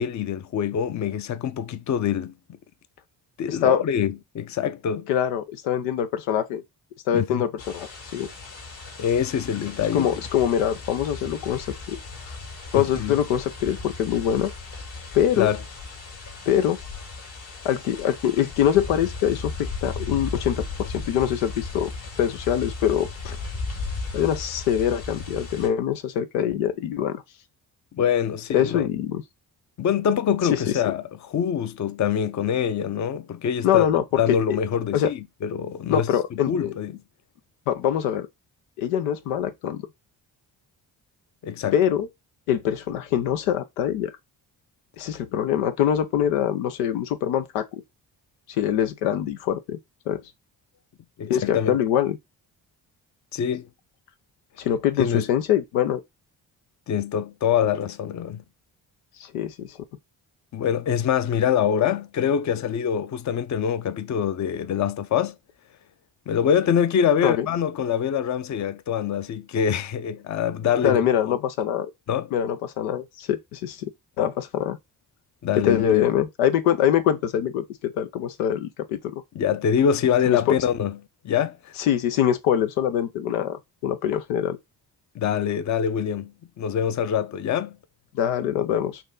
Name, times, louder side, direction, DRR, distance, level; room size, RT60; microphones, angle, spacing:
voice 1, 0.0-2.3 3.4-5.1 7.1-7.4 9.0-10.1 12.7-13.2 15.4-15.6 27.9-28.9 29.8-31.0 31.3-33.9 34.2-36.1 36.5-36.9 41.4-41.8 51.2-51.8 53.3-53.7 55.0-55.3 56.9-58.4 60.5-65.3 66.3-71.0 71.3-71.4 72.1-72.3 75.4-76.0 79.3-81.0 81.2-81.7 85.2-87.8, left 8 dB, 35° left, 0.5 m, -24 dB
voice 2, 3.5-3.8 5.1-6.6 7.1-8.3 9.9-12.0 12.3-12.4 12.7-14.5 15.1-15.5 16.5-16.8 17.6-21.9 22.2-23.4 24.1-27.2 28.5-29.2 30.5-30.6 33.6-34.0 34.5-34.6 34.9-35.1 35.9-36.8 37.7-38.3 38.8-39.8 41.7-42.1 42.5-44.1 45.0-47.7 48.6-49.8 50.1-50.2 51.3-52.2 54.6-56.0 59.2-59.8 67.2-67.5 70.8-71.9 72.3-73.9 74.2-74.8 75.6-79.2 80.3-80.6 81.8-84.6 88.1-89.0, left 10 dB, 90° left, 0.6 m, -24 dB
sound 1, 7.6-25.7, left 3 dB, 65° left, 1.9 m, -36 dB
4.4 x 2.7 x 3.7 m
hypercardioid pair, 45°, 49 cm